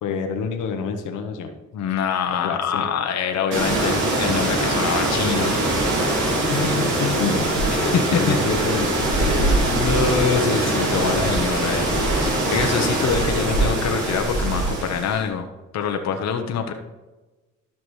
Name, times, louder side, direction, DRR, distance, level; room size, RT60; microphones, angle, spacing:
voice 1, 0.0-1.5 2.3-2.9 6.5-7.5 7.8-9.6, left 5 dB, 85° left, 5 dB, 1.1 m, -27 dB
voice 2, 1.7-5.6 7.7-8.4 9.7-15.5 15.7-16.7, left 6 dB, 60° left, 5 dB, 0.9 m, -25 dB
sound 1, 3.5-15.2, right 1 dB, 80° right, 2.5 m, -22 dB
12.5 x 5.9 x 3.2 m, 1.2 s
cardioid pair, 90°, 30 cm